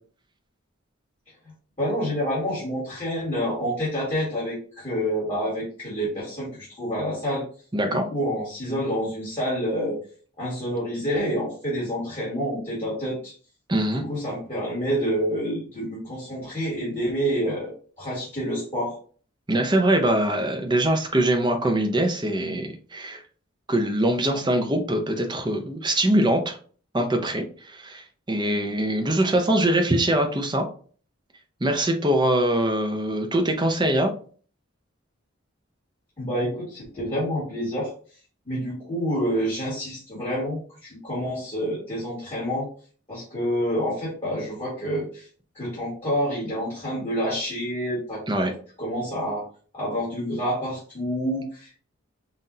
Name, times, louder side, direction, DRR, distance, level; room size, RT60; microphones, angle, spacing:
voice 1, 1.8-7.4 7.8-10.0 10.4-13.3 13.9-19.0 36.2-37.9 38.5-42.7 43.1-45.3 45.5-48.5 48.8-49.4 49.7-51.8, equal, 30° left, -8 dB, 1.9 m, -28 dB
voice 2, 7.7-8.0 13.7-14.1 19.5-23.2 23.7-26.6 26.9-30.6 31.6-34.1 48.3-48.5, right 1 dB, 20° right, 4 dB, 0.6 m, -23 dB
5.7 x 2.5 x 2.7 m, 0.42 s
head